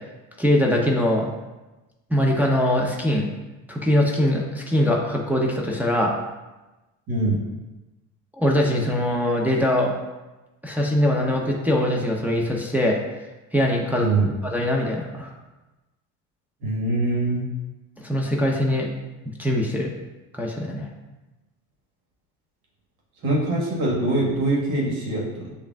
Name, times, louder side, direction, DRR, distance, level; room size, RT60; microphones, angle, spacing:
voice 1, 0.4-1.3 2.1-3.3 3.7-6.1 8.4-9.9 10.6-13.0 13.5-14.1 14.4-15.3 18.0-18.9 19.4-19.9 20.3-20.9, left 1 dB, 5° right, -2 dB, 0.6 m, -22 dB
voice 2, 7.1-7.4 14.0-14.3 16.6-17.4 23.2-25.5, right 2 dB, 70° right, -3 dB, 1.4 m, -23 dB
6.8 x 2.6 x 2.3 m, 1.1 s
supercardioid pair, 70°, 38 cm